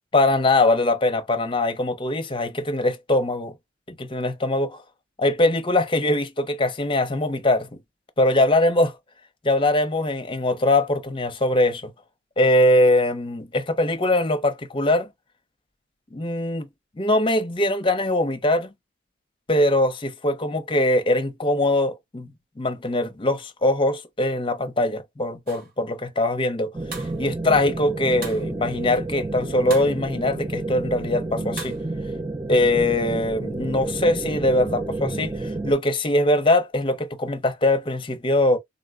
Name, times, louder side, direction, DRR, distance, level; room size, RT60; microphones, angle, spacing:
voice 1, 0.1-3.5 4.0-4.8 5.2-7.7 8.2-8.9 9.4-11.9 12.4-15.1 16.1-16.7 17.0-18.7 19.5-22.3 22.6-26.7 27.2-31.7 32.5-38.6, left 1 dB, 25° left, 0.6 m, -22 dB
sound 1, 25.5-25.7 26.9-27.2 28.2-28.5 29.7-30.0 31.6-31.8, right 3 dB, 50° right, 1.2 m, -37 dB
sound 2, 26.7-35.7, right 2 dB, 15° right, 0.4 m, -30 dB
3.9 x 2.1 x 2.4 m
head